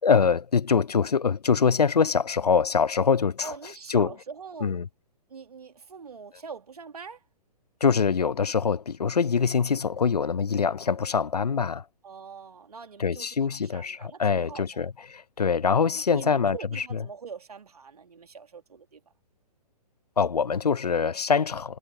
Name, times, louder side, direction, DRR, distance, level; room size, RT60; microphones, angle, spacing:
voice 1, 0.0-3.5 3.9-4.1 4.6-4.9 7.8-11.8 13.0-17.0 20.2-21.8, left 6 dB, 70° left, 0.7 m, -24 dB
voice 2, 3.4-4.8 5.3-7.2 12.0-14.9 15.9-19.0, right 5 dB, 65° right, 3.1 m, -43 dB
figure-of-eight pair, 120°, 21 cm